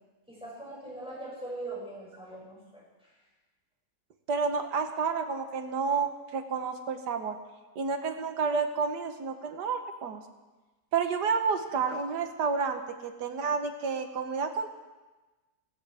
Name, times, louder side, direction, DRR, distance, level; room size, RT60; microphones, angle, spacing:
voice 1, 0.3-3.1, right 2 dB, 5° right, -7 dB, 6.1 m, -41 dB
voice 2, 4.3-7.4 7.8-10.2 10.9-14.7, right 5 dB, 75° right, 7 dB, 1.7 m, -30 dB
17.0 x 17.0 x 3.5 m, 1.2 s
omnidirectional pair, 1.8 m